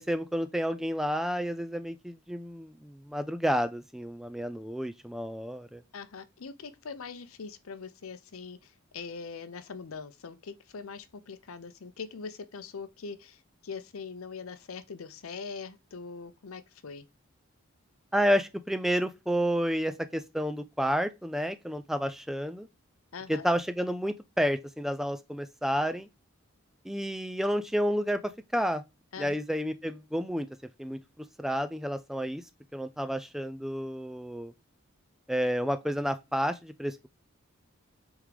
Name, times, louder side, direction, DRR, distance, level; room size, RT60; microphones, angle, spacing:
voice 1, 0.0-5.8 18.1-22.7 23.3-26.1 26.8-28.8 29.2-30.5 30.8-31.0 31.4-32.4 32.7-34.5 35.3-37.1, equal, ahead, 0.3 m, -30 dB
voice 2, 5.9-17.1 23.1-23.5 29.1-29.4, left 5 dB, 85° left, 0.6 m, -42 dB
8.1 x 3.6 x 3.3 m
head